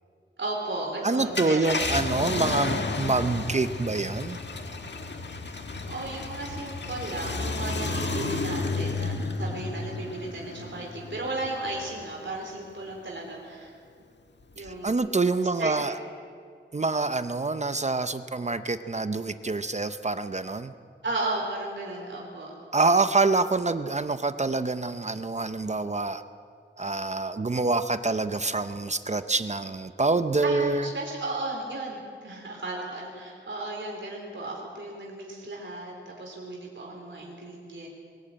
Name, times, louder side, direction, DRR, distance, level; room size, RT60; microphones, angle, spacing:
voice 1, 0.4-1.7 5.9-13.7 14.5-15.0 15.6-15.9 21.0-22.5 30.4-37.9, right 2 dB, 70° right, -1 dB, 3.4 m, -35 dB
voice 2, 1.0-4.4 14.6-16.0 16.7-20.7 22.7-26.2 26.8-30.9, right 3 dB, 35° right, 11 dB, 0.7 m, -26 dB
Car, 1.2-12.0 12.5-12.6 14.7-14.9, left 3 dB, 60° left, 1.6 m, -32 dB
23.0 x 14.5 x 8.8 m, 2.2 s
wide cardioid pair, 90°, 20 cm